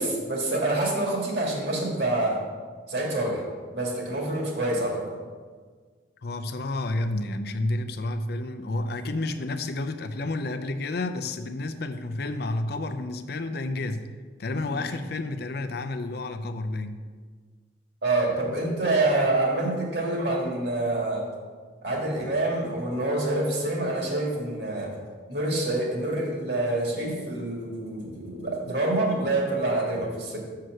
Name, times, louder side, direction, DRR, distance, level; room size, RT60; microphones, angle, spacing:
voice 1, 0.0-2.4 2.9-3.4 3.7-5.1 14.7-14.8 18.0-21.2 21.8-24.9 25.3-30.4, right 2 dB, 60° right, -1 dB, 2.0 m, -26 dB
voice 2, 6.2-14.1 14.4-17.0, left 2 dB, 55° left, 9 dB, 0.5 m, -30 dB
6.4 x 5.7 x 6.3 m, 1.5 s
head